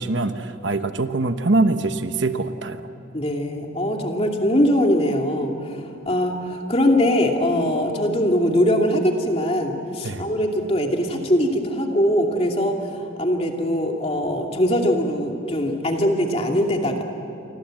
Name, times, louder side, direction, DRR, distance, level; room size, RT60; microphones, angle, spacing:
voice 1, 0.0-2.9 10.0-10.3, right 2 dB, 65° right, 9 dB, 1.1 m, -23 dB
voice 2, 3.1-17.0, equal, 30° left, 2 dB, 2.6 m, -22 dB
29.0 x 24.0 x 7.7 m, 2.8 s
head